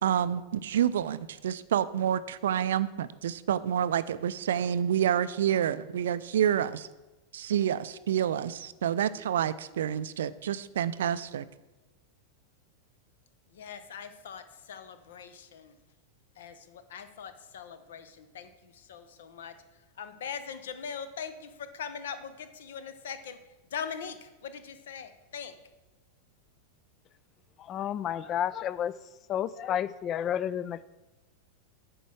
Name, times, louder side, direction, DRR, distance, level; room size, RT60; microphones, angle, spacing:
voice 1, 0.0-6.9 7.3-11.5, right 9 dB, 60° right, 16 dB, 0.3 m, -28 dB
voice 2, 13.5-15.7 16.4-23.4 23.7-25.5, left 7 dB, 60° left, 10 dB, 0.7 m, -41 dB
voice 3, 27.6-28.9 29.3-30.8, left 10 dB, 30° left, 17 dB, 0.3 m, -31 dB
9.1 x 4.5 x 6.3 m, 1.1 s
figure-of-eight pair, 90°, 0 cm